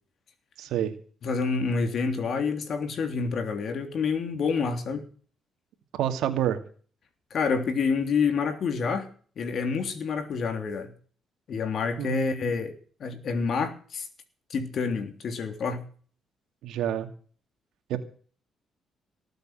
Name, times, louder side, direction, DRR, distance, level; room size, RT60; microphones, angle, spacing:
voice 1, 0.6-0.9 5.9-6.6 12.0-12.5 16.6-17.1 17.9-18.0, right 11 dB, 85° right, 8 dB, 2.4 m, -28 dB
voice 2, 1.2-5.0 7.3-9.1 9.4-10.9 11.5-12.7 13.0-14.1 14.5-15.8, left 5 dB, 60° left, 8 dB, 3.4 m, -28 dB
19.0 x 8.1 x 7.6 m, 0.43 s
cardioid pair, 90°, 0 cm